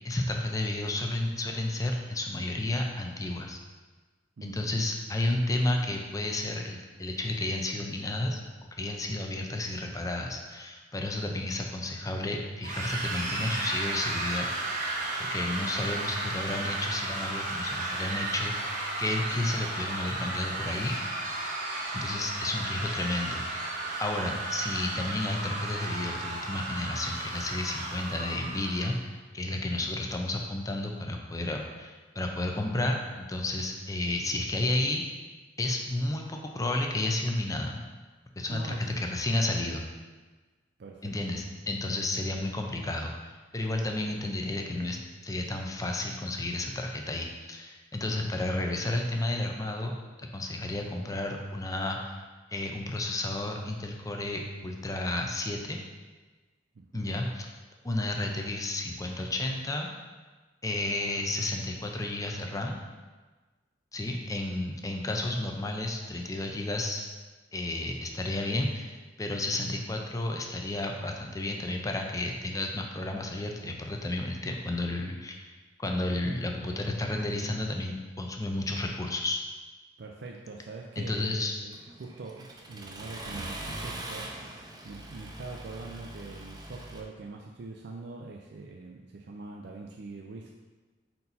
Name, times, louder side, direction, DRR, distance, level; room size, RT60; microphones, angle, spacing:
voice 1, 0.0-3.6 4.4-8.4 8.7-14.5 15.2-21.0 21.9-23.4 24.0-35.0 35.6-37.8 38.4-39.8 41.0-45.0 45.2-52.2 52.5-55.8 56.9-57.5 57.8-59.9 60.6-62.8 63.9-67.1 67.5-75.5 75.8-79.4 81.0-81.5, left 2 dB, 20° left, 2 dB, 0.6 m, -32 dB
voice 2, 4.4-4.7 15.4-15.9 38.4-39.1 40.8-41.3 41.9-42.0 56.7-57.2 80.0-90.5, right 3 dB, 65° right, 0 dB, 0.4 m, -44 dB
sound 1, 12.6-28.9, right 2 dB, 45° right, 0.9 m, -34 dB
Accelerating revving vroom, 81.7-87.0, right 1 dB, 20° right, 0.6 m, -42 dB
5.3 x 4.4 x 4.1 m, 1.3 s
head